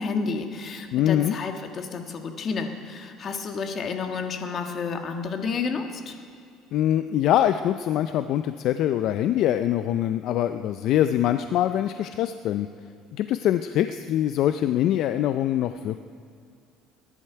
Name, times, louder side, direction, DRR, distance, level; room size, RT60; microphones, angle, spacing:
voice 1, 0.0-6.2, left 5 dB, 40° left, 5 dB, 1.5 m, -30 dB
voice 2, 0.9-1.3 6.7-12.7 13.1-16.0, left 11 dB, 60° left, 10 dB, 0.4 m, -23 dB
21.0 x 11.0 x 4.6 m, 2.4 s
cardioid pair, 120°, 0 cm